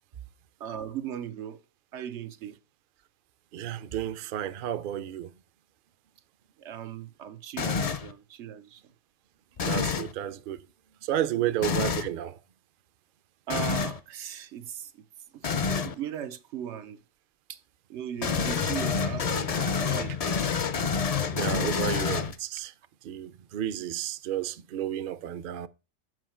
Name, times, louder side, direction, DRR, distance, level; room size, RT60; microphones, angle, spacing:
voice 1, 0.6-1.6 1.9-2.6 6.6-8.8 11.3-11.5 13.5-14.9 15.3-17.0 17.5-17.6 17.9-20.4, right 9 dB, 90° right, 1.0 m, -38 dB
voice 2, 3.5-5.3 9.6-10.6 11.0-12.4 21.3-22.7 23.0-25.7, right 11 dB, 60° right, 0.6 m, -32 dB
sound 1, 7.6-8.1 9.6-10.1 11.6-12.1 13.5-14.0 15.4-15.9 18.2-22.6, left 5 dB, 45° left, 0.5 m, -28 dB
7.7 x 5.5 x 4.4 m
omnidirectional pair, 1.2 m